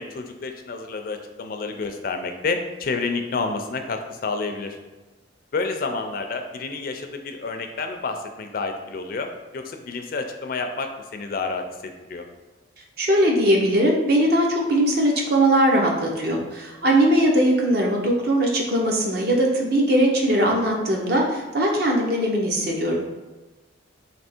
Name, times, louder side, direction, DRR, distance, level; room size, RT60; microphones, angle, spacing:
voice 1, 0.0-4.8 5.5-12.2, left 4 dB, 45° left, 5 dB, 0.4 m, -29 dB
voice 2, 13.0-23.0, right 1 dB, 50° right, -1 dB, 0.8 m, -20 dB
3.4 x 2.8 x 4.3 m, 1.1 s
head